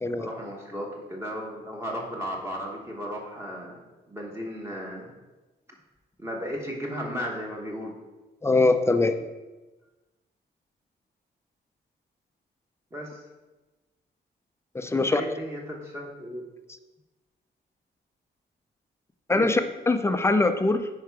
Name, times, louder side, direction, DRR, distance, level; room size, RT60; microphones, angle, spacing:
voice 1, 0.2-3.8 4.1-5.1 6.2-7.9 12.9-13.2 14.9-16.4 19.3-19.5, equal, 15° right, -2 dB, 1.1 m, -35 dB
voice 2, 8.4-9.2 14.7-15.2 19.3-19.6 19.9-20.9, left 3 dB, 15° left, 9 dB, 0.4 m, -22 dB
9.6 x 4.7 x 4.7 m, 1.2 s
wide cardioid pair, 150°, 19 cm